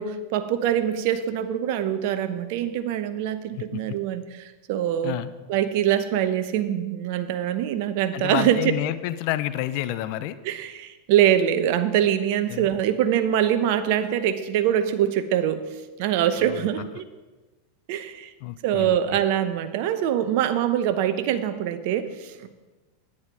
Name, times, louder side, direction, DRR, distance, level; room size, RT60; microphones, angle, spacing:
voice 1, 0.0-5.2 5.5-8.6 10.4-15.6 16.0-17.0 17.9-18.3 18.6-22.5, right 10 dB, 60° right, 11 dB, 0.9 m, -24 dB
voice 2, 3.5-4.0 5.0-5.3 8.1-10.4 12.5-12.7 16.4-16.9 18.4-19.2, left 14 dB, 60° left, 14 dB, 0.6 m, -30 dB
10.5 x 9.4 x 4.7 m, 1.2 s
hypercardioid pair, 100°, 0 cm